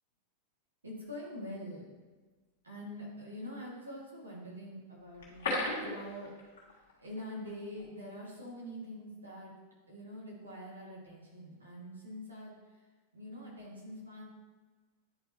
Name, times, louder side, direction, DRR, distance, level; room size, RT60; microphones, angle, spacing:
voice 1, 0.8-1.9 2.6-6.3 7.0-9.5 9.9-12.6 13.1-14.2, equal, 75° right, -5 dB, 2.2 m, -45 dB
sound 1, 5.1-6.9 7.2-7.3 7.7-7.8, left 2 dB, 60° left, 2.0 m, -35 dB
10.0 x 4.6 x 3.1 m, 1.3 s
figure-of-eight pair, 90°, 0 cm